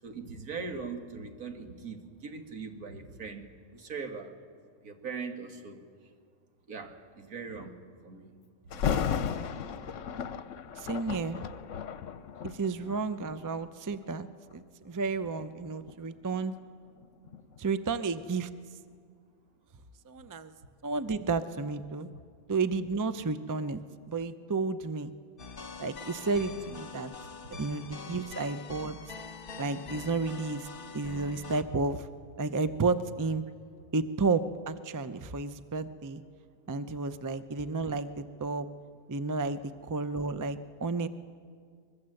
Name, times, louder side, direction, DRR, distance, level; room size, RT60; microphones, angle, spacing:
voice 1, 0.0-4.4 4.8-5.8 6.7-8.3 8.7-9.3 22.1-22.2 27.2-27.3, right 4 dB, 85° right, 2.1 m, -41 dB
Thunder, 8.7-13.7 14.3-14.6 15.2-18.0 18.4-18.5, left 7 dB, 65° left, 1.1 m, -35 dB
voice 2, 10.8-11.4 12.4-14.3 14.5-16.5 17.6-18.5 20.1-20.5 20.8-22.1 22.5-23.8 24.1-25.1 25.8-27.1 27.6-29.0 29.6-30.7 30.9-32.1 32.4-33.4 33.9-36.2 36.7-38.7 39.1-39.6 39.9-41.1, right 4 dB, 25° right, 0.4 m, -32 dB
sound 1, 25.4-31.6, left 5 dB, 40° left, 1.2 m, -44 dB
24.0 x 21.5 x 7.8 m
omnidirectional pair, 1.5 m